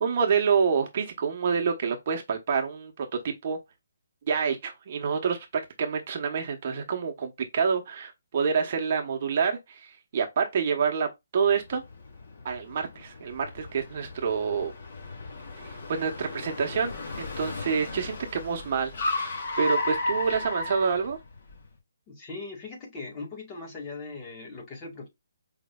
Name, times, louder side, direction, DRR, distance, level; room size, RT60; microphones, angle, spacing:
voice 1, 0.0-3.6 4.3-11.1 11.3-11.8 12.4-14.7 15.6-21.2, right 6 dB, 40° right, 1.1 m, -27 dB
Car, 11.7-21.6, left 2 dB, 50° left, 2.5 m, -34 dB
voice 2, 22.1-25.1, left 3 dB, 20° left, 1.9 m, -39 dB
5.1 x 3.1 x 2.3 m
hypercardioid pair, 160°, 0 cm